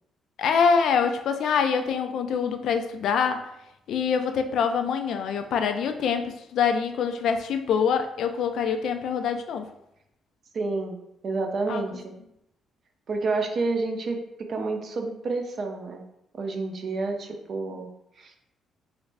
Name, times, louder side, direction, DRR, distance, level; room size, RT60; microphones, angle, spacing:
voice 1, 0.4-3.5 3.9-9.7 11.7-11.8, left 6 dB, 70° left, 7 dB, 0.3 m, -25 dB
voice 2, 10.5-11.0 11.2-12.1 13.1-14.2 14.5-16.0 16.3-17.9 18.2-18.3, right 3 dB, 45° right, 4 dB, 0.4 m, -29 dB
3.1 x 2.5 x 3.2 m, 0.82 s
cardioid pair, 110°, 0 cm